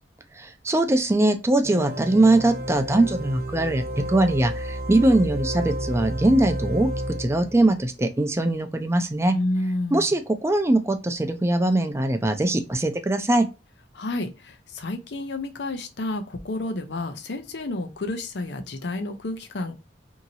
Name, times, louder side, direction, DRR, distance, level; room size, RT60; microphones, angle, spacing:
voice 1, 0.4-6.9 7.2-9.3 9.9-13.5, right 2 dB, 15° right, 0.5 m, -21 dB
sound 1, 1.6-7.8, right 1 dB, 60° right, 0.7 m, -31 dB
voice 2, 9.3-10.1 13.9-19.7, left 2 dB, 75° left, 0.6 m, -30 dB
2.8 x 2.8 x 2.5 m
head